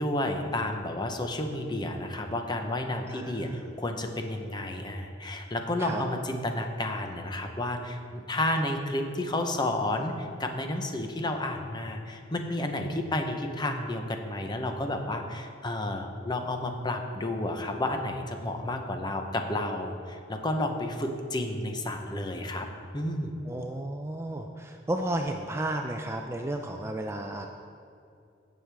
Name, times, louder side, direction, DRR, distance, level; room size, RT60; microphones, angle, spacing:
voice 1, 0.0-22.7 22.9-23.4, left 1 dB, 20° left, 4 dB, 0.8 m, -31 dB
voice 2, 3.1-3.7 5.8-6.0 23.5-27.5, right 1 dB, 15° right, 3 dB, 0.4 m, -33 dB
16.5 x 6.4 x 3.4 m, 2.5 s
head